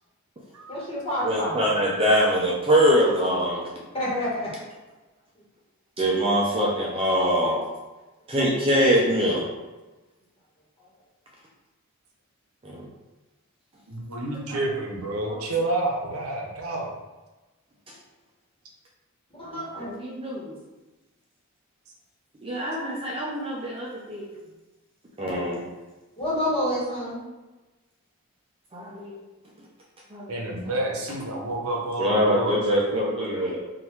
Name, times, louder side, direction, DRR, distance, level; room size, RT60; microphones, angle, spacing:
voice 1, 0.7-1.5 3.9-4.5 19.4-19.9 26.2-27.2, equal, 25° left, -5 dB, 1.4 m, -28 dB
voice 2, 1.2-3.7 6.0-7.6 8.3-9.5 12.6-12.9 14.5-14.6 15.3-15.4 17.9-18.0 19.4-20.6 22.4-24.3 25.2-25.6 28.7-29.2 29.6-29.7 30.1-30.8 32.0-33.6, equal, 25° right, -4 dB, 0.6 m, -24 dB
voice 3, 13.9-17.0 30.3-32.9, right 2 dB, 80° right, 0 dB, 0.8 m, -29 dB
3.8 x 2.6 x 4.5 m, 1.1 s
head